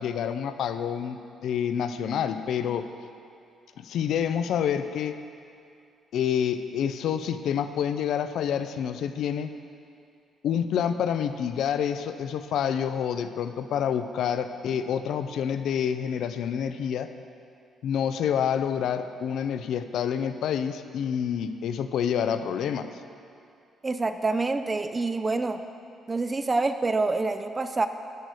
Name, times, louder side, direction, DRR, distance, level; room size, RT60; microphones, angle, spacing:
voice 1, 0.0-2.9 3.8-5.2 6.1-9.5 10.4-17.1 17.8-22.9, left 8 dB, 75° left, 10 dB, 0.4 m, -28 dB
voice 2, 23.8-25.6 26.1-27.9, right 3 dB, 25° right, 9 dB, 0.3 m, -26 dB
10.5 x 4.0 x 6.4 m, 2.5 s
cardioid pair, 90°, 0 cm